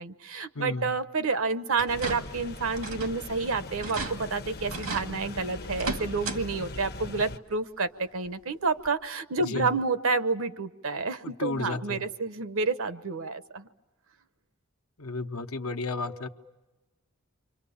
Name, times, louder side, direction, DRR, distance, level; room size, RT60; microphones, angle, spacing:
voice 1, 0.0-13.7, right 4 dB, 70° right, 12 dB, 0.9 m, -29 dB
voice 2, 0.5-0.9 9.4-9.7 11.2-12.1 15.0-16.3, left 3 dB, 80° left, 5 dB, 1.1 m, -33 dB
sound 1, 1.8-2.4 2.8-3.2 3.5-3.6 3.8-4.1 4.7-5.1 5.7-6.4 6.8-6.9 8.3-8.4 8.9-9.0, right 3 dB, 90° right, 2.1 m, -35 dB
sound 2, 1.9-7.4, left 2 dB, 45° left, 0.9 m, -40 dB
29.5 x 25.0 x 7.1 m, 1.1 s
head